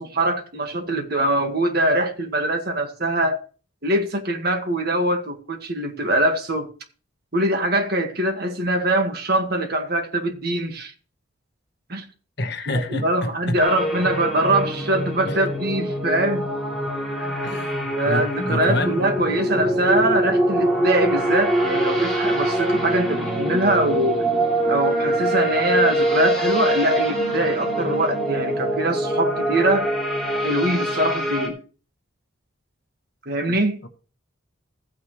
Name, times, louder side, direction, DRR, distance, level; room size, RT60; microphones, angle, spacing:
voice 1, 0.0-3.4 3.8-6.7 7.3-10.9 11.9-12.0 12.7-16.5 17.2-17.5 18.0-24.2 24.7-29.9 30.3-31.6 33.3-33.8, right 1 dB, 50° right, 1.7 m, -23 dB
voice 2, 12.4-13.6 15.3-15.6 17.4-19.0 33.5-33.9, left 1 dB, 55° left, 1.3 m, -29 dB
sound 1, 13.6-31.5, right 1 dB, ahead, 2.7 m, -24 dB
15.0 x 9.1 x 3.2 m
head